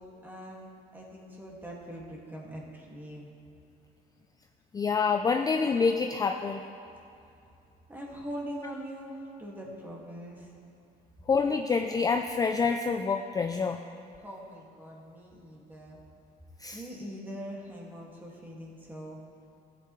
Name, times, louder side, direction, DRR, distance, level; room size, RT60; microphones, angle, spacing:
voice 1, 0.0-3.3 7.9-10.5 14.2-16.0 16.7-19.2, equal, 10° right, -3 dB, 2.0 m, -42 dB
voice 2, 4.7-6.6 11.3-13.8 16.6-16.8, left 5 dB, 20° left, 5 dB, 0.4 m, -27 dB
15.0 x 8.4 x 3.2 m, 2.6 s
cardioid pair, 110°, 17 cm